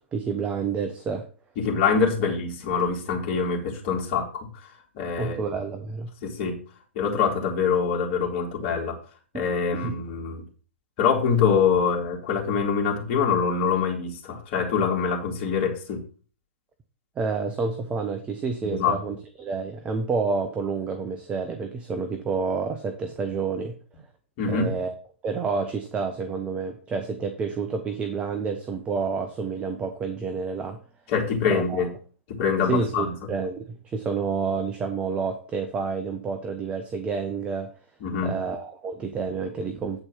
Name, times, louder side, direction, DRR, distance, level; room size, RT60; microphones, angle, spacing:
voice 1, 0.1-1.3 5.2-6.1 9.3-9.4 9.7-9.9 17.2-23.8 24.5-24.9 25.2-30.8 31.4-31.9 32.7-37.7 38.2-40.0, right 5 dB, 15° right, 7 dB, 0.8 m, -29 dB
voice 2, 1.6-4.7 5.0-5.4 6.2-6.6 6.9-9.0 9.3-10.4 11.0-16.0 18.6-19.0 24.4-24.7 31.1-31.9 32.3-33.1 38.0-38.4, left 6 dB, 35° left, 0 dB, 2.6 m, -24 dB
8.7 x 4.4 x 6.4 m, 0.40 s
figure-of-eight pair, 115°, 7 cm